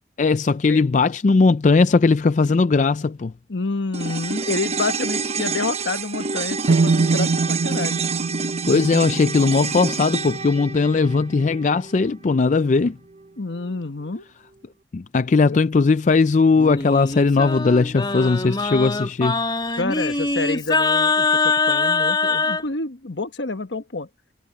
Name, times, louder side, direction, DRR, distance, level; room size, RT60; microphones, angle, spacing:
voice 1, 0.2-3.3 8.7-13.0 14.9-19.4, left 4 dB, 40° left, 0.4 m, -18 dB
voice 2, 3.5-8.0 13.4-14.2 19.8-24.1, left 3 dB, 75° left, 1.3 m, -28 dB
sound 1, 3.9-12.4 12.7-12.8, right 4 dB, 35° right, 1.0 m, -28 dB
sound 2, 6.7-10.6, right 3 dB, 65° right, 0.6 m, -24 dB
Singing, 16.6-22.6, left 3 dB, 25° left, 2.8 m, -23 dB
head